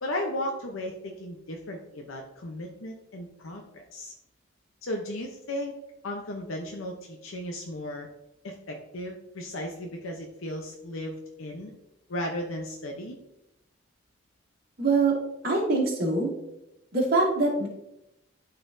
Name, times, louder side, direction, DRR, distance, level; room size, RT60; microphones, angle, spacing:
voice 1, 0.0-4.1 4.8-5.7 6.0-8.1 8.4-11.7 12.1-13.2, left 1 dB, 80° left, 2 dB, 0.8 m, -35 dB
voice 2, 14.8-15.2 15.4-16.3 16.9-17.7, right 3 dB, 45° right, -4 dB, 2.3 m, -23 dB
12.0 x 4.2 x 2.6 m, 0.86 s
head